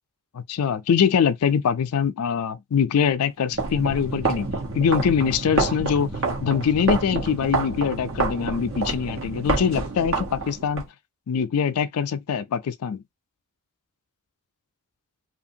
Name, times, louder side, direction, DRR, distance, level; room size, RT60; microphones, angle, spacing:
voice 1, 0.3-6.1 6.4-10.9 11.3-13.0, left 7 dB, 85° left, 0.4 m, -23 dB
sound 1, 3.5-10.9, right 3 dB, 65° right, 1.1 m, -28 dB
2.8 x 2.5 x 2.6 m
head